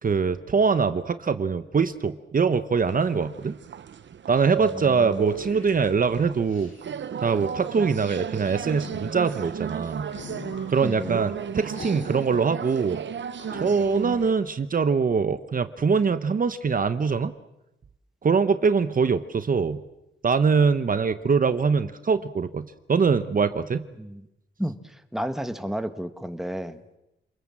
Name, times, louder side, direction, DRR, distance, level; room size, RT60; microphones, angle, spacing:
voice 1, 0.0-3.5 4.3-6.7 7.2-10.1 10.7-13.0 13.5-17.3 18.2-19.8 20.2-23.8, right 5 dB, 45° right, 11 dB, 0.9 m, -23 dB
sound 1, 2.8-14.3, right 7 dB, 70° right, 0.9 m, -34 dB
voice 2, 4.6-5.2 10.8-11.2 23.9-24.3 24.6-26.8, equal, ahead, 8 dB, 1.5 m, -32 dB
sound 2, 5.0-6.8 8.3-9.2 10.0-10.8 11.7-12.5 12.8-12.9 13.4-14.3, left 4 dB, 90° left, 7.4 m, -43 dB
27.5 x 21.0 x 7.5 m, 0.89 s
wide cardioid pair, 110°, 20 cm